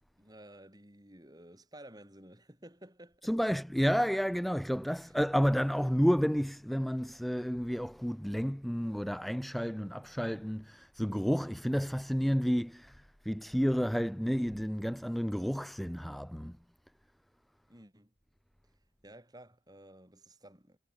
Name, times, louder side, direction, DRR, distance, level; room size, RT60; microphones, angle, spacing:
voice 1, 0.2-3.3 5.0-5.2 17.7-18.1 19.0-20.8, right 1 dB, 20° right, 6.6 m, -54 dB
voice 2, 3.2-16.6, equal, ahead, 0.4 m, -31 dB
head